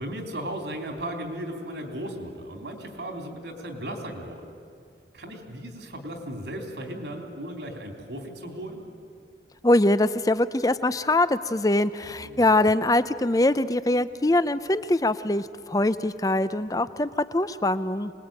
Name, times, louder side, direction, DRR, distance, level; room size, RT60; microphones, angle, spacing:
voice 1, 0.0-4.5 5.1-8.9 12.2-12.5, right 1 dB, 75° right, 4 dB, 3.4 m, -36 dB
voice 2, 9.6-18.1, left 2 dB, 20° left, 14 dB, 0.6 m, -23 dB
25.0 x 20.5 x 9.0 m, 2.3 s
head